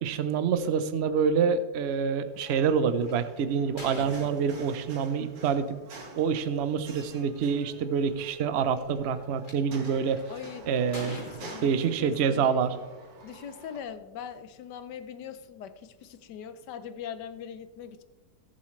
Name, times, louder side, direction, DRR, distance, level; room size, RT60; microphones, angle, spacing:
voice 1, 0.0-5.8 6.2-10.2 10.7-11.2 11.6-12.7, right 6 dB, 60° right, 11 dB, 0.7 m, -27 dB
sound 1, 2.3-13.8, right 3 dB, 90° right, 2.3 m, -49 dB
sound 2, 2.4-2.5 3.1-4.9 6.2-6.4 7.1-7.2 7.3-7.8 8.5-9.5 10.2-10.4 10.9-12.3, equal, 25° left, 2.3 m, -43 dB
voice 2, 10.3-10.7 11.0-12.5 13.2-18.0, left 8 dB, 75° left, 12 dB, 1.3 m, -41 dB
17.5 x 7.3 x 3.2 m, 1.2 s
omnidirectional pair, 1.9 m